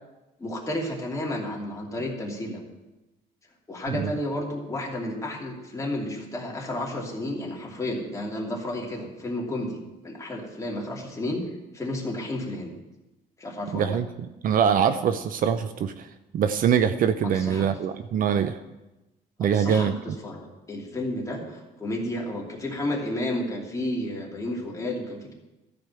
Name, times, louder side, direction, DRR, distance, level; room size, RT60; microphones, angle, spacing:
voice 1, 0.4-2.7 3.7-11.4 11.7-12.7 13.4-14.0 17.2-17.7 19.4-25.3, left 1 dB, 20° left, -2 dB, 2.8 m, -32 dB
voice 2, 13.7-14.1 14.4-16.1 16.3-18.6 19.4-19.9, right 8 dB, 55° right, 10 dB, 0.7 m, -23 dB
13.0 x 5.2 x 7.6 m, 1.0 s
cardioid pair, 110°, 17 cm